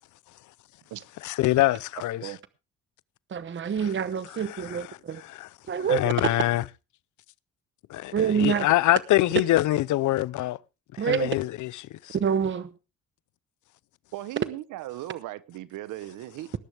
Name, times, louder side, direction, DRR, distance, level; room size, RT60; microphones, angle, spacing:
voice 1, 1.2-2.2 5.3-5.5 5.9-6.6 7.9-10.6 11.0-11.7 12.1-12.2, left 16 dB, 75° left, 0.7 m, -24 dB
voice 2, 3.3-5.2 5.7-6.1 8.1-8.7 11.0-11.3 12.1-12.7, right 7 dB, 40° right, 0.9 m, -26 dB
voice 3, 14.1-16.5, right 15 dB, 90° right, 0.9 m, -37 dB
19.0 x 10.5 x 3.4 m
cardioid pair, 90°, 30 cm